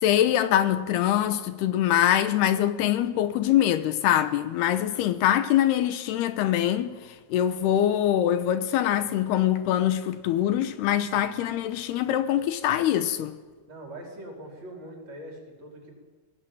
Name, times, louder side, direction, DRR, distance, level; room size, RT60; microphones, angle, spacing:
voice 1, 0.0-13.4, left 11 dB, 75° left, 2.7 m, -24 dB
voice 2, 13.7-15.9, right 1 dB, 40° right, 5.8 m, -42 dB
23.5 x 18.0 x 8.9 m
omnidirectional pair, 5.1 m